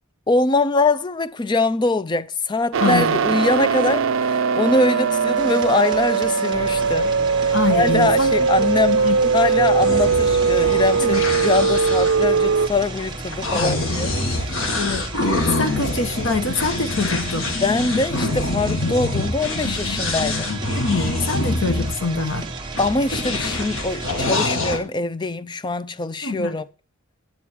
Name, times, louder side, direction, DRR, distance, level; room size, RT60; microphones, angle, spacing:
voice 1, 0.3-7.1 7.4-8.9 9.3-14.6 17.6-20.5 22.8-26.7, left 3 dB, 20° left, 0.4 m, -23 dB
sound 1, 2.7-12.7, right 5 dB, 80° right, 0.5 m, -20 dB
voice 2, 2.8-3.2 7.5-9.3 11.0-11.4 13.5-13.8 14.7-15.1 15.5-17.5 20.7-22.5 23.3-23.4 26.2-26.5, left 3 dB, 70° left, 1.2 m, -25 dB
sound 2, 5.3-24.4, right 3 dB, 20° right, 1.1 m, -34 dB
sound 3, 9.8-21.9 22.7-24.8, left 2 dB, 85° left, 1.9 m, -25 dB
9.2 x 8.4 x 4.6 m
head